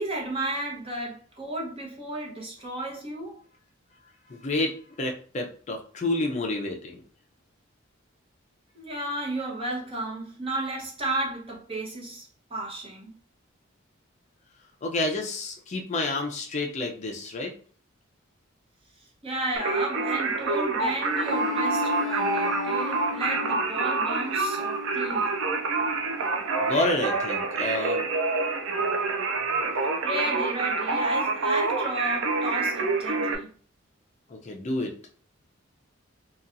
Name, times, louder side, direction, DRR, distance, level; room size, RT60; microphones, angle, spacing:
voice 1, 0.0-3.4 8.7-13.1 19.0-25.3 30.0-33.5, right 2 dB, 30° right, 0.8 m, -33 dB
voice 2, 4.3-7.0 14.8-17.5 26.6-28.1 34.3-34.9, left 2 dB, 35° left, 0.4 m, -29 dB
Singing, 19.5-33.3, right 3 dB, 70° right, 0.4 m, -27 dB
Bowed string instrument, 21.0-25.7, left 7 dB, 90° left, 0.5 m, -36 dB
2.8 x 2.3 x 2.4 m
head